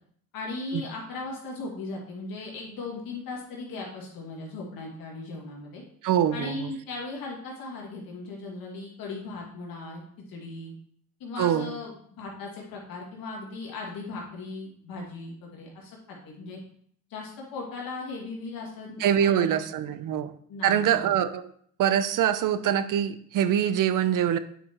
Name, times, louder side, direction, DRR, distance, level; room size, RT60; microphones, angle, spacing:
voice 1, 0.3-5.8 6.3-10.0 10.3-10.7 11.2-16.6 17.1-19.6 19.9-20.0 20.5-21.2, left 3 dB, 85° left, -2 dB, 2.2 m, -38 dB
voice 2, 6.0-6.7 11.4-11.7 19.0-20.4 20.6-21.4 21.8-24.4, right 10 dB, 65° right, 13 dB, 0.6 m, -24 dB
8.8 x 5.0 x 3.0 m, 0.62 s
cardioid pair, 70°, 34 cm